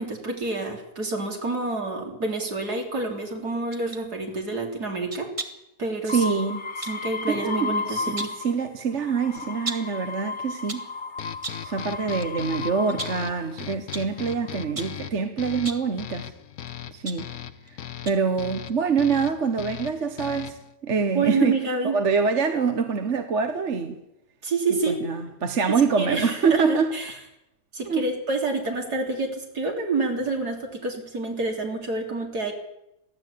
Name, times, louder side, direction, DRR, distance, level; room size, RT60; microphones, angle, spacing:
voice 1, 0.0-5.3 5.8-6.2 6.8-8.3 21.1-22.0 24.4-25.0 25.7-27.2 27.7-32.5, right 3 dB, 80° right, 4.0 m, -28 dB
sound 1, 3.7-4.1 5.1-5.7 6.8-7.0 7.9-8.5 9.7-10.0 10.5-11.0 11.4-11.7 12.2-12.4 12.9-13.3 13.9-14.2 14.8-15.1 15.6-15.9 16.7-17.7 18.1-18.3 18.7-18.8, right 2 dB, 20° right, 1.9 m, -36 dB
voice 2, 6.0-6.6 7.3-10.9 11.6-16.3 16.9-17.3 18.0-20.6 20.8-24.0 24.9-26.9 27.9-28.1, right 5 dB, 50° right, 1.6 m, -25 dB
sound 2, 6.1-8.6 9.0-13.5 14.3-14.9, left 4 dB, 40° left, 0.9 m, -34 dB
sound 3, 11.2-20.7, left 10 dB, 70° left, 1.4 m, -39 dB
23.0 x 15.5 x 8.5 m
omnidirectional pair, 1.7 m